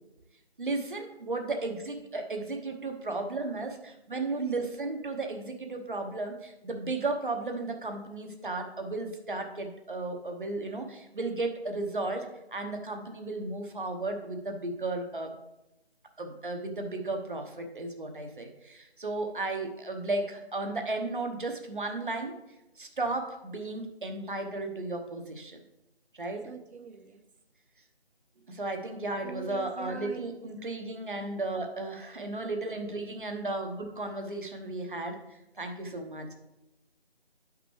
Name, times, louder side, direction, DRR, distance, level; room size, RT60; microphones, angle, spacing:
voice 1, 0.6-15.3 16.2-22.4 22.8-25.6 26.1-26.5 28.5-36.3, right 2 dB, 50° right, 4 dB, 1.1 m, -34 dB
voice 2, 26.4-27.2 29.2-30.2, right 7 dB, 85° right, 7 dB, 0.8 m, -43 dB
9.8 x 5.9 x 3.2 m, 0.94 s
figure-of-eight pair, 180°, 32 cm